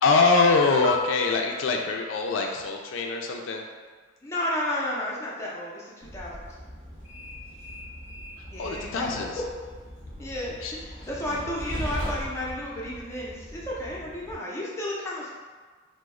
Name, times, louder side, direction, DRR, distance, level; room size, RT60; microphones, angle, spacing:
voice 1, 0.0-3.6 8.6-9.4 10.6-10.7, left 4 dB, 75° left, 2 dB, 0.3 m, -23 dB
sound 1, 0.8-3.3, left 5 dB, 65° right, 0.4 m, -37 dB
voice 2, 4.2-6.5 8.5-9.4 10.2-15.3, left 1 dB, 15° left, -6 dB, 0.5 m, -32 dB
Train, 6.0-14.3, equal, 40° right, 0.8 m, -39 dB
3.0 x 2.0 x 3.6 m, 1.5 s
head